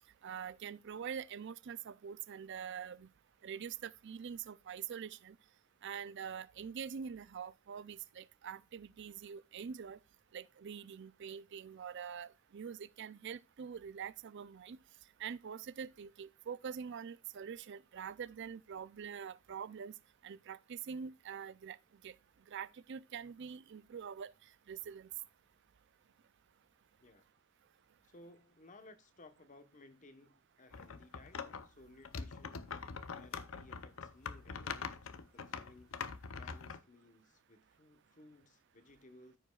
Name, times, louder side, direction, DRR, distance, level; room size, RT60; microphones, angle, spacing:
voice 1, 0.2-3.1 3.4-5.4 5.8-10.0 10.3-14.8 15.2-19.9 20.2-21.8 22.0-22.1 22.5-24.3 24.7-25.1, right 7 dB, 60° right, 0.4 m, -45 dB
voice 2, 28.0-31.4 31.6-32.7 33.1-39.4, left 2 dB, 40° left, 1.0 m, -60 dB
Scratching with Fingernails, 30.7-31.7 32.0-36.8, left 5 dB, 75° left, 0.7 m, -43 dB
14.0 x 5.2 x 2.3 m
head